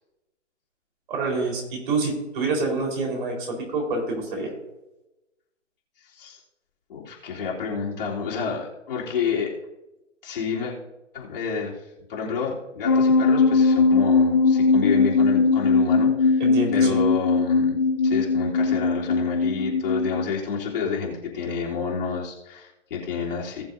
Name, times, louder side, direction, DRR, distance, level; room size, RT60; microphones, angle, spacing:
voice 1, 1.1-4.5 16.4-17.0, right 3 dB, 40° right, 0 dB, 4.2 m, -27 dB
voice 2, 6.9-9.5 10.2-10.7 11.1-11.8 12.1-16.4 16.7-17.8 18.0-23.6, left 6 dB, 45° left, -4 dB, 3.2 m, -29 dB
sound 1, 12.8-20.3, left 4 dB, 20° left, 0.5 m, -20 dB
19.5 x 7.1 x 2.6 m, 0.97 s
figure-of-eight pair, 145°, 38 cm